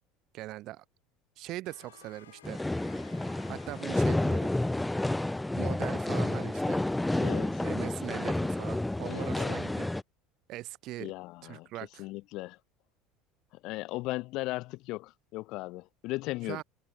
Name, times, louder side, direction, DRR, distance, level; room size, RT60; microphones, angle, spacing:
voice 1, 0.3-0.8 1.4-2.6 3.5-4.5 5.5-6.9 7.1-7.3 7.6-9.9 10.5-11.1 11.4-12.1 16.5-16.6, right 16 dB, 50° right, 6.0 m, -41 dB
sound 1, 1.6-5.6, left 10 dB, 70° left, 4.6 m, -57 dB
sound 2, 2.4-10.0, left 1 dB, 5° left, 0.6 m, -30 dB
voice 2, 7.2-7.6 9.0-9.6 11.0-11.7 12.0-12.6 13.6-16.6, left 20 dB, 50° left, 0.9 m, -37 dB
figure-of-eight pair, 65°, 0 cm